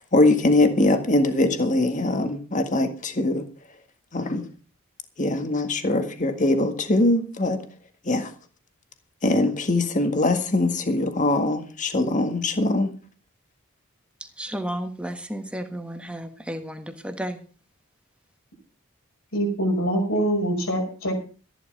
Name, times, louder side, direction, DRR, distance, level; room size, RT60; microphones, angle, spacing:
voice 1, 0.0-3.5 4.1-4.5 5.2-7.6 8.0-8.3 9.2-13.0, left 2 dB, 35° left, 1.8 m, -22 dB
voice 2, 14.4-17.4, right 1 dB, 5° right, 1.5 m, -32 dB
voice 3, 19.3-21.2, right 1 dB, 70° left, 5.9 m, -24 dB
14.0 x 11.0 x 5.4 m
head